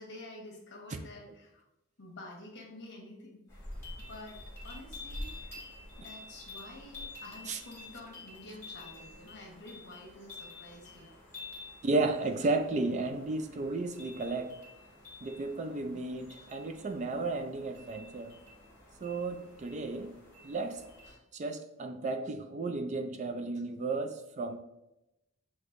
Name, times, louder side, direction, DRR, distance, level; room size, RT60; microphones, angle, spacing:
voice 1, 0.0-1.6 2.0-3.6 4.0-5.6 6.0-11.1 15.8-16.0, left 2 dB, 60° left, 0 dB, 1.1 m, -49 dB
sound 1, 3.5-21.1, left 2 dB, 10° left, 1.6 m, -48 dB
voice 2, 11.8-14.6 15.2-18.4 19.0-20.2 20.4-20.8 21.3-24.6, right 3 dB, 35° right, 6 dB, 0.4 m, -33 dB
6.2 x 2.9 x 2.5 m, 0.89 s
head